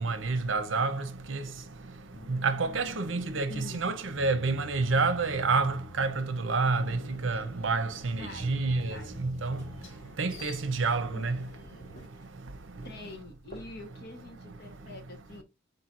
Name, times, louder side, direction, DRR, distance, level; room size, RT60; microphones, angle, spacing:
voice 1, 0.0-1.4 2.3-9.6 10.2-11.4, right 3 dB, 70° right, 0.7 m, -29 dB
sound 1, 2.1-10.2, left 1 dB, 5° left, 0.5 m, -49 dB
voice 2, 3.5-3.8 8.2-9.3 11.1-11.2 12.8-15.4, left 2 dB, 55° left, 1.1 m, -46 dB
sound 2, 6.7-12.1, left 1 dB, 85° left, 1.5 m, -50 dB
sound 3, 8.7-14.1, left 1 dB, 35° left, 1.9 m, -56 dB
4.4 x 3.9 x 2.5 m
head